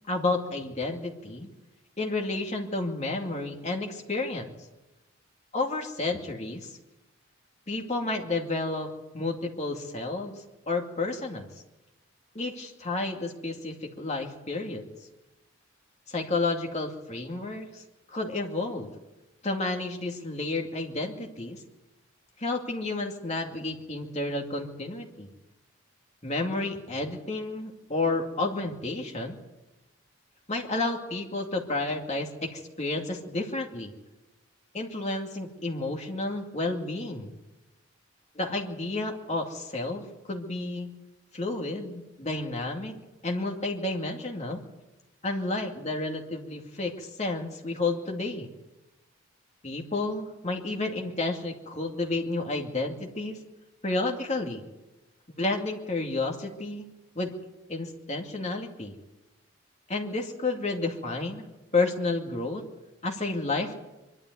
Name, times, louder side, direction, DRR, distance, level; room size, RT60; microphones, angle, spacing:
voice 1, 0.1-1.5 2.0-4.6 5.5-6.7 7.7-10.4 10.7-11.5 12.3-14.9 16.1-17.8 18.1-18.9 19.4-21.6 22.4-25.3 26.2-29.4 30.5-33.9 34.7-37.3 38.3-40.9 41.3-42.9 43.2-44.6 45.2-48.5 49.6-53.4 53.8-54.6 55.4-56.9 57.2-57.3 57.7-58.9 59.9-61.5 61.7-62.7 63.0-63.7, left 2 dB, 30° left, 2 dB, 2.4 m, -31 dB
23.5 x 12.5 x 9.3 m, 1.0 s
head